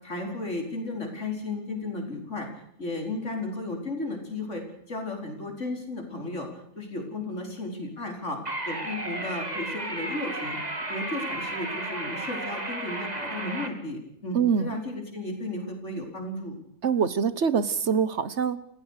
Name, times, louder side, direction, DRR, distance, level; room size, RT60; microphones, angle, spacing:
voice 1, 0.0-2.5 2.8-6.5 6.8-10.6 10.9-16.6, left 2 dB, 65° left, 2 dB, 5.3 m, -34 dB
sound 1, 8.5-13.7, right 2 dB, 30° right, 2.7 m, -33 dB
voice 2, 14.3-14.8 16.8-18.6, right 6 dB, 60° right, 15 dB, 1.4 m, -24 dB
28.5 x 16.0 x 6.6 m, 0.75 s
omnidirectional pair, 1.3 m